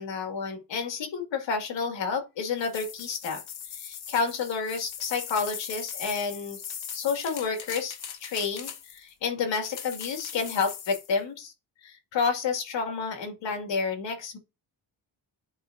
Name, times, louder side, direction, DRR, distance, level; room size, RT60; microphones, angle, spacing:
voice 1, 0.0-3.4 3.7-6.6 6.9-7.9 8.2-11.5 11.8-14.4, left 5 dB, 80° left, 2.2 m, -30 dB
sound 1, 2.6-9.1 9.6-11.1, left 8 dB, 60° left, 1.2 m, -40 dB
9.8 x 4.0 x 2.6 m
cardioid pair, 75°, 44 cm